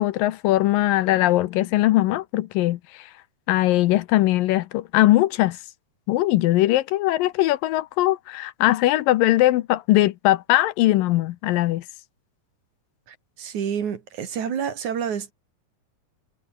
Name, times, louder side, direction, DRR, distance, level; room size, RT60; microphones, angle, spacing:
voice 1, 0.0-3.1 3.5-5.6 6.1-11.8, left 16 dB, 80° left, 2.4 m, -20 dB
voice 2, 13.1-15.3, right 8 dB, 60° right, 3.5 m, -29 dB
omnidirectional pair, 4.1 m